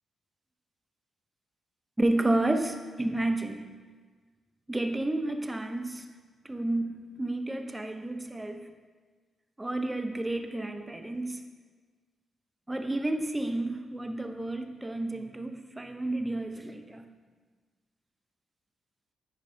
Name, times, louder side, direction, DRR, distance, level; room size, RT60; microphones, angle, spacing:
voice 1, 2.0-3.6 4.7-6.0 6.4-8.7 9.6-11.4 12.7-17.0, right 2 dB, 15° right, 7 dB, 0.6 m, -31 dB
9.9 x 4.8 x 2.6 m, 1.4 s
cardioid pair, 60°, 0 cm